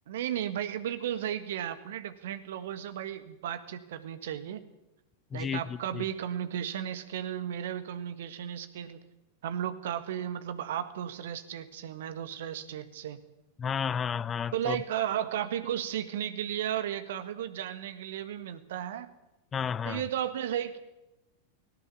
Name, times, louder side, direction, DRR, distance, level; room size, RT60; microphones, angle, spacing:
voice 1, 0.1-4.6 5.3-9.0 9.4-13.2 14.5-19.1 19.8-20.8, right 10 dB, 55° right, 1.7 m, -34 dB
voice 2, 5.3-6.1 13.6-14.8 19.5-20.0, left 7 dB, 20° left, 0.7 m, -32 dB
18.0 x 18.0 x 8.7 m
figure-of-eight pair, 90°, 0 cm